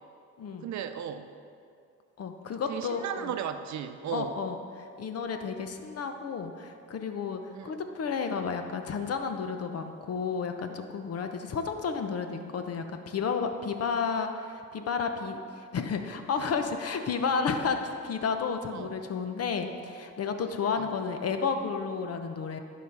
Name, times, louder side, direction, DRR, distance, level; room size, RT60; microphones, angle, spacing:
voice 1, 0.6-1.3 2.7-4.4 7.5-7.8 18.7-18.9 20.6-20.9, right 9 dB, 65° right, 9 dB, 0.7 m, -36 dB
voice 2, 2.2-3.3 4.1-22.6, left 5 dB, 55° left, 6 dB, 0.9 m, -32 dB
11.5 x 5.1 x 5.6 m, 2.4 s
cardioid pair, 90°, 30 cm